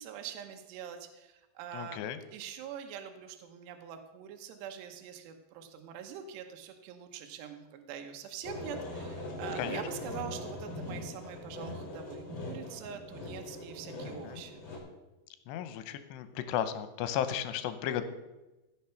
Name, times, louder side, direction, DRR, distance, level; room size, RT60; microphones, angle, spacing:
voice 1, 0.0-2.0 2.3-14.6, right 8 dB, 80° right, 5 dB, 3.1 m, -44 dB
voice 2, 1.7-2.2 9.6-9.8 14.2-14.4 15.5-18.0, left 10 dB, 80° left, 11 dB, 2.9 m, -34 dB
sound 1, 8.4-14.8, left 2 dB, 40° left, 3.3 m, -41 dB
15.0 x 6.4 x 5.7 m, 1.0 s
omnidirectional pair, 5.0 m